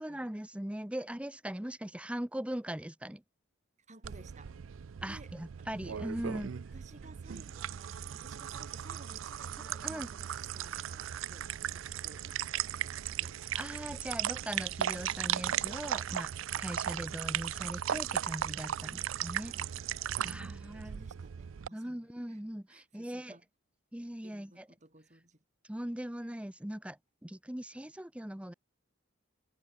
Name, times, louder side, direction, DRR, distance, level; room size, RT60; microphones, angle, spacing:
voice 1, 0.0-3.2 5.0-6.5 9.6-10.1 13.5-16.3 16.6-19.5 20.2-21.0 21.7-23.4 23.9-24.7 25.6-28.5, right 1 dB, 5° right, 0.6 m, -40 dB
voice 2, 3.9-4.5 5.1-5.3 5.6-5.7 6.5-13.4 19.4-19.7 20.2-22.4 22.7-23.4 24.2-25.4, right 2 dB, 35° right, 6.5 m, -57 dB
sound 1, 4.0-21.7, right 10 dB, 70° right, 0.4 m, -37 dB
head